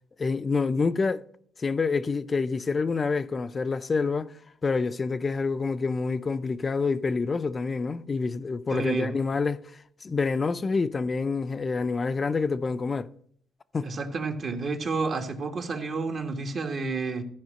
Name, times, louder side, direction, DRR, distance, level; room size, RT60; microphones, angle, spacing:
voice 1, 0.2-1.2 1.6-4.3 4.6-13.1 13.7-13.9, left 4 dB, 35° left, 0.5 m, -27 dB
voice 2, 8.7-9.1 13.8-17.2, right 4 dB, 50° right, 1.5 m, -30 dB
13.5 x 5.0 x 6.5 m
cardioid pair, 90°, 0 cm